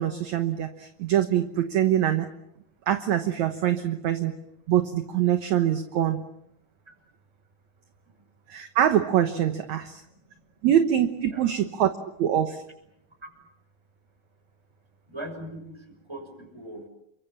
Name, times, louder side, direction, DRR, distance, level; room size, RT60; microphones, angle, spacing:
voice 1, 0.0-2.3 2.9-4.3 4.7-6.2 8.5-10.0 10.6-11.9 12.2-12.6, right 10 dB, 65° right, 8 dB, 2.2 m, -24 dB
voice 2, 15.1-16.9, right 1 dB, 5° right, 5 dB, 5.9 m, -40 dB
29.5 x 24.0 x 7.4 m, 0.78 s
omnidirectional pair, 4.1 m